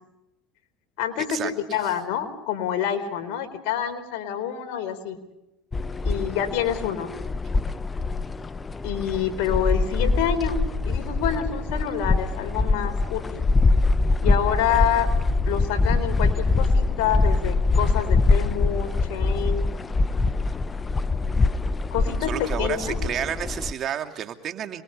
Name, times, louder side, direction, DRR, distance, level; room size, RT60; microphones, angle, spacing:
voice 1, 1.0-5.2 6.0-7.1 8.8-10.6 10.8-13.4 14.2-15.1 15.4-19.6 21.9-23.0, left 9 dB, 70° left, 7 dB, 4.2 m, -27 dB
sound 1, 5.7-23.7, left 3 dB, 20° left, 0.8 m, -24 dB
voice 2, 22.3-24.8, right 9 dB, 45° right, 6 dB, 2.6 m, -30 dB
28.0 x 22.5 x 5.4 m, 0.91 s
supercardioid pair, 100°, 0 cm